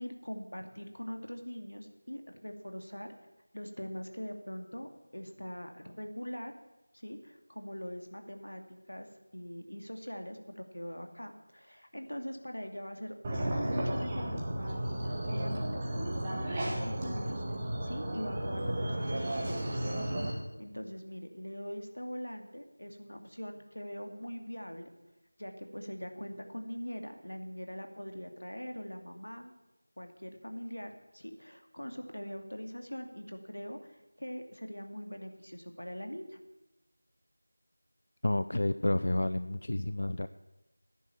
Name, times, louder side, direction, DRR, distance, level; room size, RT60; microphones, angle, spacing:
voice 1, 0.0-3.1 3.5-4.9 5.1-6.5 6.9-9.1 9.3-13.1 13.6-14.8 15.3-24.9 25.4-29.5 30.0-33.9 34.2-36.4, equal, 80° left, 5 dB, 2.4 m, -42 dB
sound 1, 13.2-20.3, right 1 dB, 15° right, 1.7 m, -33 dB
voice 2, 38.2-40.3, left 1 dB, 50° left, 12 dB, 0.4 m, -30 dB
14.5 x 10.0 x 7.1 m, 1.0 s
figure-of-eight pair, 175°, 0 cm